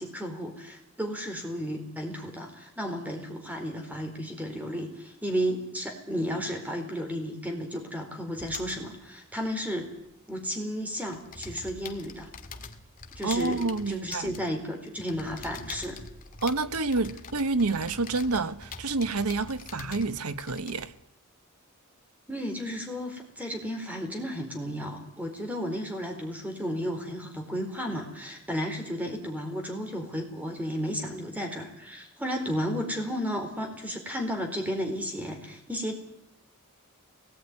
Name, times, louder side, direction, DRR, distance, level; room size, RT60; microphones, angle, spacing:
voice 1, 0.0-9.9 10.3-12.3 13.1-16.0 22.3-36.0, equal, 5° right, 4.4 m, -33 dB
sound 1, 8.4-10.6 10.9-21.0, left 4 dB, 40° left, 2.0 m, -45 dB
voice 2, 13.2-14.3 16.4-20.9, right 3 dB, 85° right, 1.1 m, -28 dB
22.5 x 19.0 x 9.7 m
head